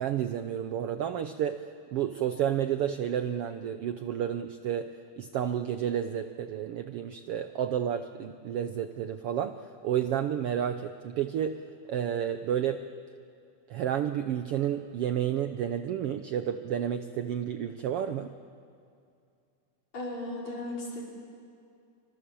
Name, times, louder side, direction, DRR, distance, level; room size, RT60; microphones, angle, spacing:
voice 1, 0.0-1.6 1.9-4.9 5.2-9.6 9.8-11.6 11.9-12.8 13.7-18.3, right 9 dB, 70° right, 9 dB, 1.4 m, -31 dB
voice 2, 19.9-21.0, left 1 dB, 60° left, -3 dB, 6.6 m, -36 dB
29.0 x 25.5 x 7.0 m, 2.4 s
omnidirectional pair, 3.5 m